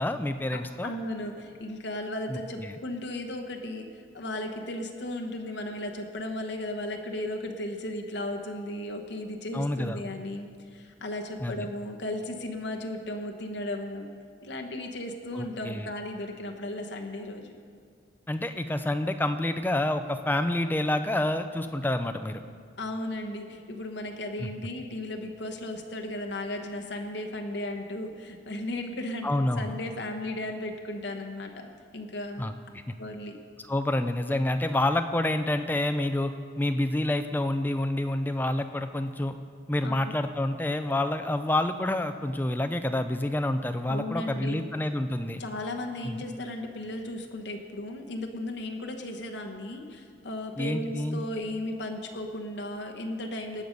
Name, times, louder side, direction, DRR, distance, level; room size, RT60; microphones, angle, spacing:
voice 1, 0.0-0.9 2.3-2.8 9.5-10.0 11.4-11.6 15.3-15.9 18.3-22.4 24.4-24.5 29.2-29.7 32.4-32.5 33.7-39.4 39.7-45.4 46.0-46.2 50.6-51.2, left 1 dB, 10° left, 8 dB, 0.4 m, -28 dB
voice 2, 0.5-14.1 14.4-17.6 22.8-31.7 31.9-32.5 33.0-33.4 39.8-40.1 43.9-44.7 45.4-53.6, left 1 dB, 65° left, 3 dB, 1.1 m, -35 dB
18.5 x 6.4 x 5.3 m, 2.1 s
head